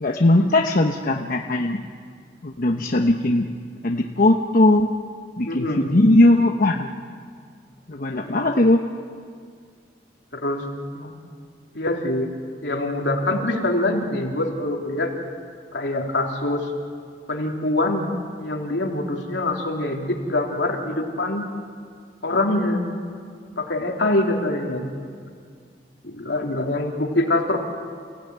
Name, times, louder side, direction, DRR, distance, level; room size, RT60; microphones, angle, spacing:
voice 1, 0.0-1.8 2.4-3.5 3.8-4.9 5.4-6.9 7.9-8.8, left 1 dB, 50° left, 2 dB, 1.0 m, -19 dB
voice 2, 5.5-5.9 8.2-8.5 10.3-10.6 10.9-11.1 11.7-12.3 12.6-15.1 15.7-16.7 17.3-18.1 18.4-21.4 22.2-22.8 23.6-25.0 26.0-27.6, left 2 dB, 75° left, 1 dB, 3.2 m, -24 dB
29.0 x 16.5 x 9.5 m, 2.1 s
head